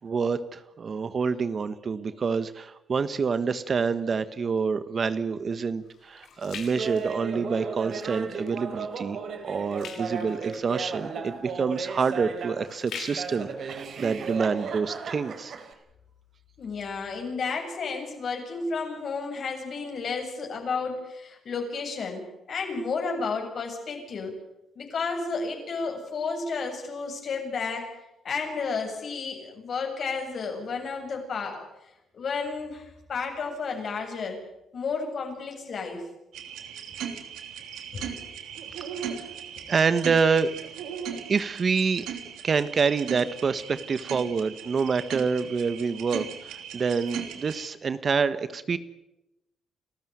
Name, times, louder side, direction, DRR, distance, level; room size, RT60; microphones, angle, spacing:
voice 1, 0.0-9.2 9.4-15.5 39.7-40.5 41.3-42.0 42.4-48.8, right 5 dB, 45° right, 13 dB, 1.4 m, -27 dB
sound 1, 4.7-7.9 8.3-8.6 9.0-14.9 15.4-15.5, left 6 dB, 70° left, 5.9 m, -45 dB
Laughter, 6.8-12.7 13.1-15.7, right 5 dB, 60° right, 4.2 m, -35 dB
voice 2, 16.6-24.3 24.8-27.9 28.2-31.7 32.1-34.4 34.7-36.0 37.9-38.2 41.1-41.2, left 4 dB, 55° left, 3 dB, 7.8 m, -32 dB
sound 2, 36.3-47.7, right 8 dB, 85° right, 3.3 m, -38 dB
30.0 x 14.0 x 9.5 m, 0.91 s
cardioid pair, 90°, 0 cm